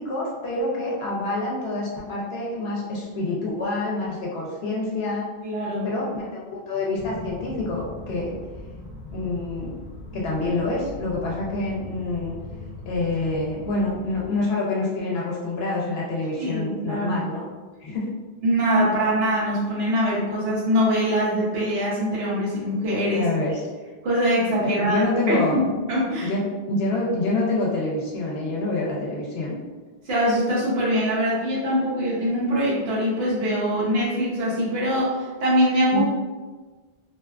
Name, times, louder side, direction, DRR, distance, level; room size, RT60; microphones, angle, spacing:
voice 1, 0.0-5.3 5.8-8.4 9.1-9.7 10.1-12.4 12.9-17.5 17.8-18.1 23.1-23.6 24.6-25.6 26.2-29.5 35.9-36.0, left 2 dB, 75° left, -4 dB, 0.8 m, -27 dB
voice 2, 5.4-5.9 16.4-17.2 18.4-23.3 24.0-25.6 25.9-26.3 30.1-36.0, equal, 75° right, -6 dB, 1.0 m, -23 dB
sound 1, 6.9-14.3, left 2 dB, 45° left, 0.7 m, -39 dB
2.7 x 2.3 x 2.2 m, 1.3 s
omnidirectional pair, 1.0 m